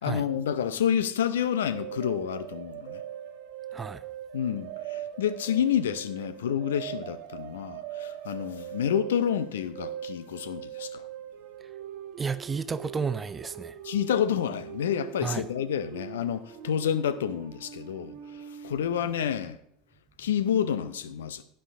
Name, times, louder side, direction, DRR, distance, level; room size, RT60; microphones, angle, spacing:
voice 1, 0.0-3.0 4.3-11.0 13.8-19.6 20.2-21.4, left 9 dB, 70° left, 0.6 m, -29 dB
sound 1, 1.7-19.1, right 10 dB, 55° right, 0.8 m, -41 dB
voice 2, 12.2-13.7 15.2-15.5, right 5 dB, 20° right, 0.6 m, -31 dB
11.0 x 10.0 x 3.6 m
figure-of-eight pair, 75°, 0 cm